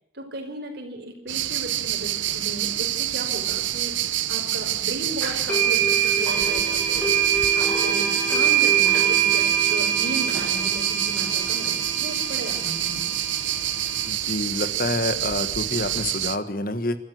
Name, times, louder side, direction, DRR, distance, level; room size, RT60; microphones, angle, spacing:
voice 1, 0.1-13.1, right 1 dB, 55° right, 4 dB, 5.0 m, -36 dB
sound 1, 1.3-16.4, right 13 dB, 85° right, 1.0 m, -27 dB
sound 2, 5.2-14.1, right 7 dB, 10° left, 6.7 m, -24 dB
voice 2, 14.1-17.0, left 2 dB, 50° left, 11 dB, 1.6 m, -27 dB
25.0 x 13.0 x 7.9 m, 0.78 s
head